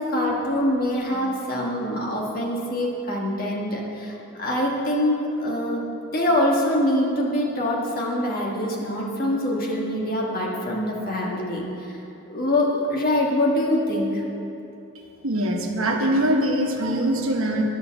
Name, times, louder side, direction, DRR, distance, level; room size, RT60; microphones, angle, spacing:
voice 1, 0.0-5.8 6.1-11.9 12.3-14.2, left 1 dB, 40° left, -2 dB, 1.6 m, -24 dB
voice 2, 15.2-17.6, right 1 dB, 70° right, 1 dB, 1.1 m, -22 dB
9.9 x 6.6 x 7.1 m, 2.9 s
head